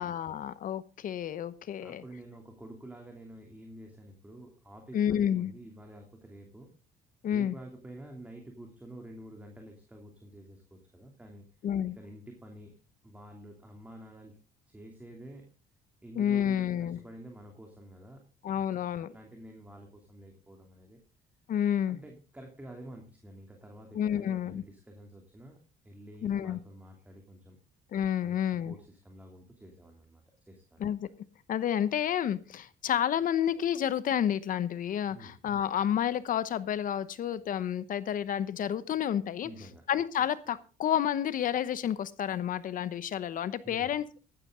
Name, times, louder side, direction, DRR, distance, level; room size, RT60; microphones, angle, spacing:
voice 1, 0.0-2.0 4.9-5.5 7.2-7.5 11.6-12.0 16.2-17.0 18.4-19.1 21.5-22.0 23.9-24.6 26.2-26.6 27.9-28.7 30.8-31.1 31.5-39.5 39.9-44.2, left 9 dB, 55° left, 15 dB, 0.9 m, -30 dB
voice 2, 1.8-6.7 7.3-11.5 12.0-12.7 13.0-14.4 14.7-15.5 16.0-18.2 18.6-21.0 21.9-25.6 25.8-27.6 28.2-28.4 28.7-30.8 35.1-35.4 39.4-39.9 43.6-43.9, right 1 dB, 10° right, 2 dB, 2.8 m, -49 dB
15.0 x 12.0 x 3.7 m, 0.35 s
cardioid pair, 110°, 17 cm